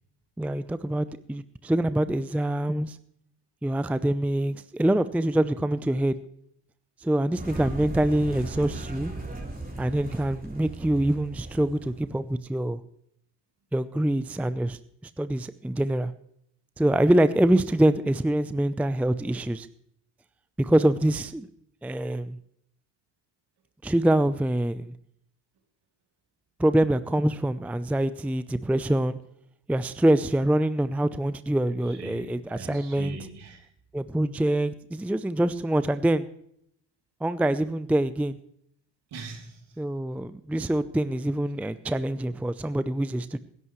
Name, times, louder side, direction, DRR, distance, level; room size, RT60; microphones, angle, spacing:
voice 1, 0.4-3.0 3.6-6.2 7.0-9.1 9.8-12.8 13.7-16.1 16.8-19.7 20.6-21.5 21.8-22.4 23.8-24.9 26.6-29.2 29.7-33.2 33.9-36.3 37.2-38.4 39.8-43.4, right 1 dB, 5° right, 14 dB, 0.5 m, -25 dB
sound 1, 7.4-12.3, right 2 dB, 20° right, 4.0 m, -37 dB
voice 2, 31.7-33.7 39.1-39.8, right 4 dB, 60° right, 3 dB, 3.1 m, -42 dB
20.5 x 11.0 x 3.1 m, 0.71 s
hypercardioid pair, 50°, 46 cm